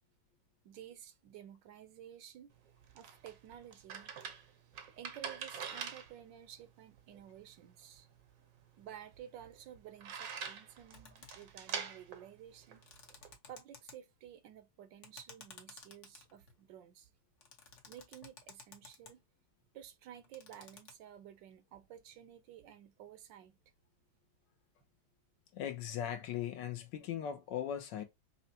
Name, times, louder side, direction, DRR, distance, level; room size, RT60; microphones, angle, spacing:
voice 1, 0.6-2.5 2.9-4.2 4.9-8.1 8.8-12.8 13.5-17.1 17.9-19.2 19.7-23.6, right 10 dB, 80° right, 1.3 m, -53 dB
sound 1, 2.5-13.4, right 7 dB, 60° right, 0.9 m, -46 dB
sound 2, 10.9-11.6 12.6-13.9 15.0-16.6 17.4-19.1 20.1-20.9, left 5 dB, 50° left, 1.0 m, -54 dB
voice 2, 25.5-28.0, left 9 dB, 75° left, 1.3 m, -39 dB
5.6 x 2.1 x 2.7 m
omnidirectional pair, 2.1 m